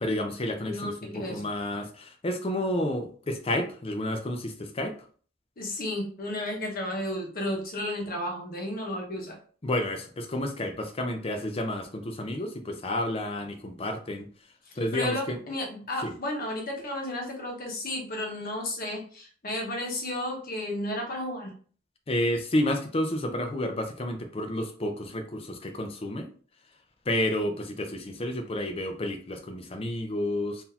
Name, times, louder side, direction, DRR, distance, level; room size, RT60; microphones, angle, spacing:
voice 1, 0.0-4.9 9.6-14.3 14.8-15.4 16.0-16.1 22.1-26.3 27.1-30.6, left 1 dB, 30° left, 6 dB, 0.6 m, -30 dB
voice 2, 0.6-1.5 5.6-9.4 14.6-21.5, left 1 dB, 45° left, 1 dB, 1.1 m, -33 dB
3.9 x 2.7 x 2.8 m, 0.42 s
head